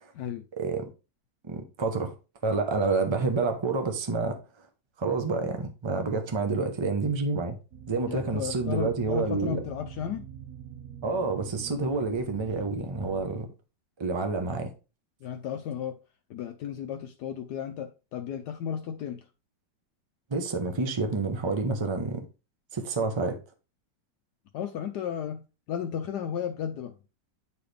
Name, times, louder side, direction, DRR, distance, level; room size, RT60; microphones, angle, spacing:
voice 1, 1.5-2.1 2.4-4.4 5.0-7.6 7.9-9.6 11.0-13.5 14.0-14.7 20.3-22.2 22.7-23.4, right 3 dB, 25° right, 0.6 m, -28 dB
sound 1, 7.7-13.3, right 8 dB, 60° right, 1.5 m, -44 dB
voice 2, 8.1-10.2 15.2-16.0 16.3-19.2 24.5-25.4 25.7-26.9, left 8 dB, 70° left, 1.1 m, -34 dB
9.4 x 4.2 x 3.3 m
omnidirectional pair, 2.0 m